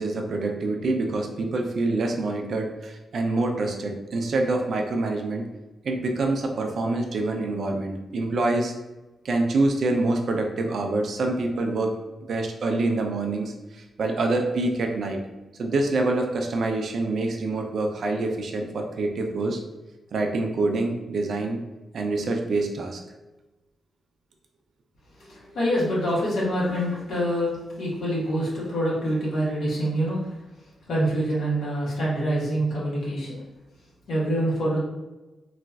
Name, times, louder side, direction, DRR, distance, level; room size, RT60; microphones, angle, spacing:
voice 1, 0.0-5.5 5.8-8.7 9.2-12.0 12.3-15.2 15.6-19.6 20.1-21.6 21.9-23.0, right 2 dB, 60° right, 3 dB, 0.4 m, -26 dB
voice 2, 25.2-30.3 30.9-33.4 34.1-34.8, equal, 80° left, -7 dB, 1.3 m, -26 dB
4.0 x 2.4 x 2.3 m, 1.1 s
wide cardioid pair, 140°, 0 cm